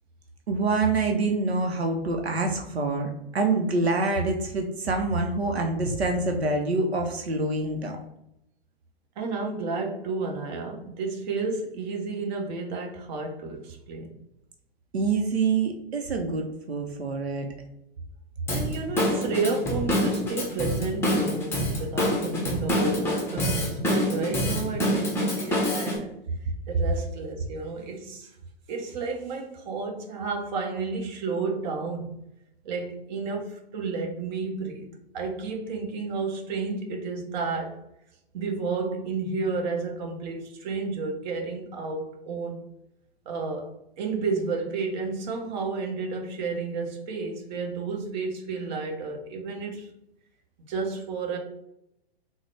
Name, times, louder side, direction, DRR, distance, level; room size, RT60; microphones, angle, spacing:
voice 1, 0.5-8.0 14.9-17.5, right 3 dB, 85° right, 0.6 m, -26 dB
voice 2, 9.2-14.1 18.5-26.2 26.7-28.3 28.7-32.1 32.6-34.9 35.1-37.8 38.3-42.6 43.3-49.9 50.7-51.4, right 4 dB, 45° right, 0.8 m, -31 dB
Drum kit / Drum, 18.5-26.0, equal, 10° left, 0.6 m, -26 dB
3.7 x 2.1 x 3.2 m
figure-of-eight pair, 110°, 31 cm